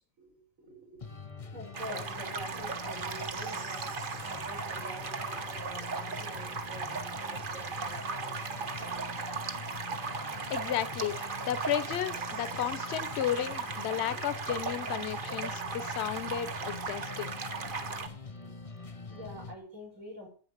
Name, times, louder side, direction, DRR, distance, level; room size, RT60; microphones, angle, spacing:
voice 1, 0.2-1.0 1.4-8.4 8.7-9.1 14.1-14.2 16.6-16.7 17.6-17.7 18.2-18.4 18.9-20.3, equal, 85° right, 0 dB, 5.6 m, -47 dB
sound 1, 1.0-19.6, left 4 dB, 30° left, 0.9 m, -45 dB
sound 2, 1.7-18.1, right 4 dB, 40° right, 1.2 m, -37 dB
voice 2, 10.5-17.4, left 10 dB, 60° left, 13 dB, 1.0 m, -33 dB
9.8 x 8.6 x 7.3 m, 0.43 s
omnidirectional pair, 1.4 m